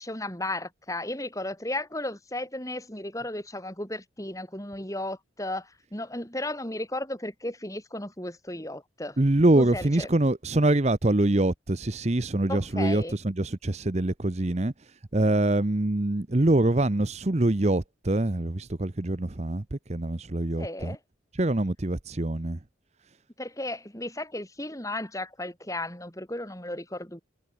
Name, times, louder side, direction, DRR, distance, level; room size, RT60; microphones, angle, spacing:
voice 1, 0.0-9.2 9.6-10.1 12.5-13.2 20.6-21.0 23.4-27.2, left 1 dB, 15° left, 4.9 m, -34 dB
voice 2, 9.2-14.7 15.1-21.0 21.3-22.6, right 2 dB, 35° right, 0.8 m, -24 dB
head